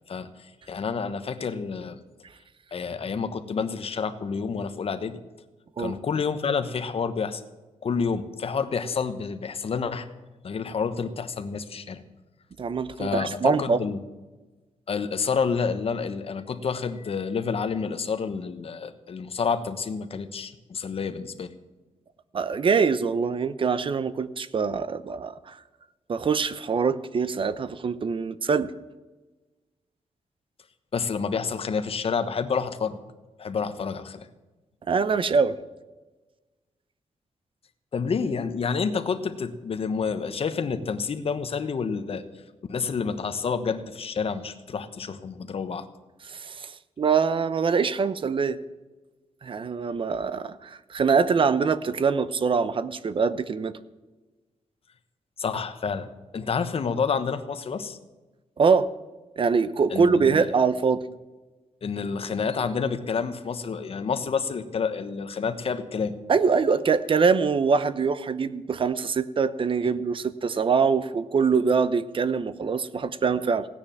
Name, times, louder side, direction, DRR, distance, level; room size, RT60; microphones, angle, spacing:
voice 1, 0.1-2.0 2.7-5.2 5.8-7.4 7.8-10.1 10.4-12.0 13.0-14.0 14.9-21.5 30.9-33.0 33.4-34.3 37.9-42.2 42.7-45.9 55.4-56.1 56.3-58.0 59.9-60.5 61.8-66.1, left 5 dB, 55° left, 9 dB, 1.1 m, -29 dB
voice 2, 12.6-13.8 22.3-25.6 26.1-28.7 34.9-35.6 46.3-46.7 47.0-48.6 49.4-53.8 58.6-58.9 59.4-61.0 66.3-73.7, right 5 dB, 45° right, 14 dB, 0.7 m, -24 dB
16.5 x 9.8 x 7.2 m, 1.2 s
wide cardioid pair, 135°, 12 cm